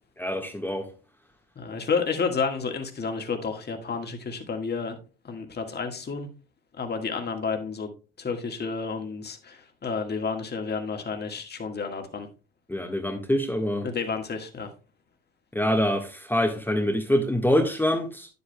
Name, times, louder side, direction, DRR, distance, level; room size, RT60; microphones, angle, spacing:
voice 1, 0.2-0.9 12.7-13.9 15.5-18.3, equal, 5° left, 1.5 m, -25 dB
voice 2, 1.6-5.0 5.2-6.3 6.8-7.9 8.2-12.3 13.8-14.7, left 5 dB, 30° left, 1.8 m, -30 dB
9.8 x 8.3 x 2.3 m
hypercardioid pair, 70°, 32 cm